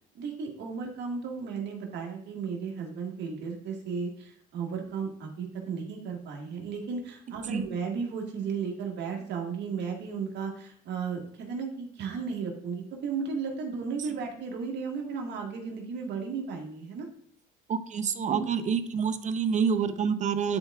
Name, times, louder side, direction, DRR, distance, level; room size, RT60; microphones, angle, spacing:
voice 1, 0.2-17.1 18.3-18.4, right 5 dB, 65° right, 0 dB, 1.8 m, -34 dB
voice 2, 17.7-20.6, right 6 dB, 40° right, 11 dB, 0.7 m, -27 dB
10.5 x 4.7 x 2.3 m, 0.66 s
supercardioid pair, 90°, 19 cm